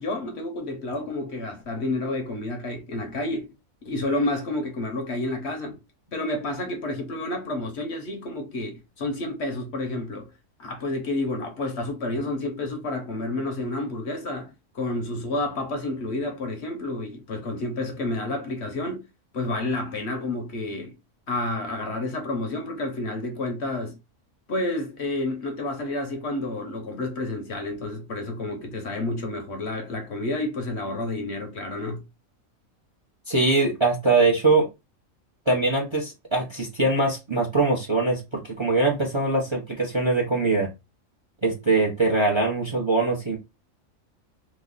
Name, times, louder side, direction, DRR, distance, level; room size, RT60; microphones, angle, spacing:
voice 1, 0.0-3.5 3.8-5.8 6.1-10.3 10.6-14.5 14.7-19.0 19.3-20.9 21.3-24.0 24.5-32.0, left 2 dB, 60° left, 1.0 m, -30 dB
voice 2, 33.3-34.7 35.5-40.7 41.4-43.4, right 3 dB, 25° right, 0.7 m, -22 dB
3.0 x 2.2 x 3.8 m
omnidirectional pair, 1.4 m